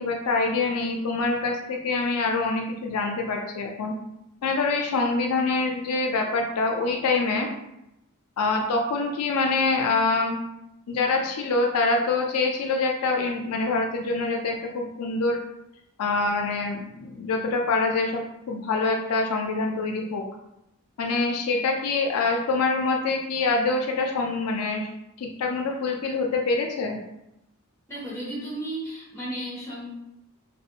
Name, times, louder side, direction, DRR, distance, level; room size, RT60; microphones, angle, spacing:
voice 1, 0.0-3.9 4.4-7.5 8.4-10.4 10.9-15.4 16.0-20.2 21.0-24.9 25.2-27.0, left 3 dB, 85° left, 2 dB, 0.4 m, -25 dB
voice 2, 27.9-29.9, right 1 dB, 15° left, -6 dB, 0.9 m, -34 dB
2.4 x 2.2 x 2.7 m, 0.86 s
head